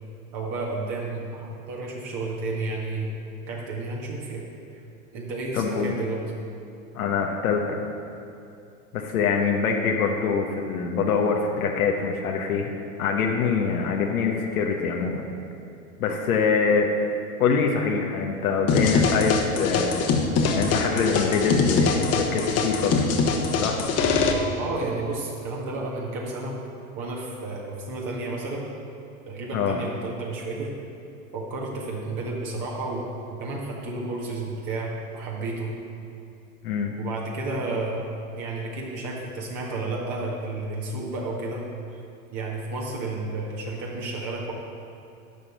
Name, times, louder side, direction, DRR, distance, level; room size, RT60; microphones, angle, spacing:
voice 1, 0.3-3.1 3.4-4.4 4.7-4.8 5.1-6.2 24.6-26.6 26.9-28.7 29.3-30.7 31.3-35.7 37.0-41.6 41.9-42.0 42.3-44.5, right 2 dB, 45° right, -2 dB, 1.8 m, -31 dB
voice 2, 5.5-5.9 6.9-7.8 8.9-12.7 13.0-15.2 16.0-16.9 17.4-20.0 20.4-23.1 23.5-23.8 29.5-29.8 36.6-36.9, left 5 dB, 80° left, 1 dB, 1.2 m, -24 dB
sound 1, 18.7-24.3, left 4 dB, 35° left, 1.3 m, -23 dB
10.5 x 5.6 x 7.9 m, 2.7 s
hypercardioid pair, 100°, 43 cm